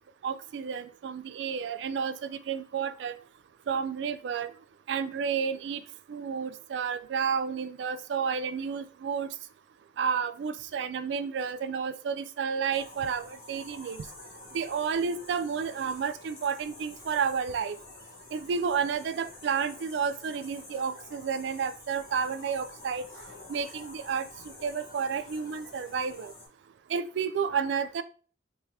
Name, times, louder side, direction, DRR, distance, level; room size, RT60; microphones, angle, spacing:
voice 1, 0.2-3.1 3.7-4.5 4.9-5.8 6.1-9.3 10.0-14.0 14.5-17.8 18.3-23.0 23.5-24.2 24.6-26.3 26.9-28.0, right 6 dB, 70° right, 12 dB, 0.3 m, -31 dB
sound 1, 12.7-26.5, left 2 dB, 50° left, 1.1 m, -49 dB
3.5 x 3.2 x 2.7 m, 0.40 s
head